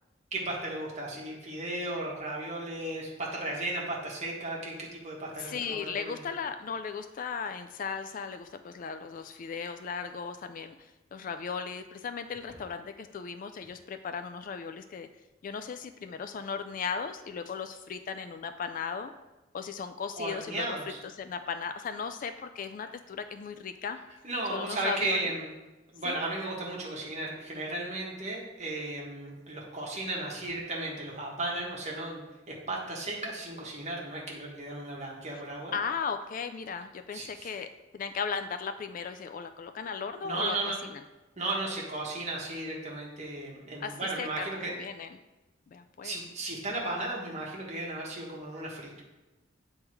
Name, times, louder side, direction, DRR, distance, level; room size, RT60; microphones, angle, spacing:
voice 1, 0.3-6.2 20.2-21.0 24.2-25.5 25.9-32.2 32.5-35.8 37.1-37.5 40.2-40.8 41.4-44.7 46.0-49.0, right 2 dB, 35° right, -3 dB, 1.5 m, -35 dB
voice 2, 5.4-15.1 15.4-19.1 19.5-20.8 21.2-24.0 24.5-25.3 26.0-26.2 35.3-35.4 35.7-37.7 37.9-40.6 43.8-44.5 44.8-45.1 45.7-46.2, left 6 dB, 40° left, 8 dB, 0.3 m, -36 dB
8.0 x 3.6 x 4.6 m, 1.1 s
head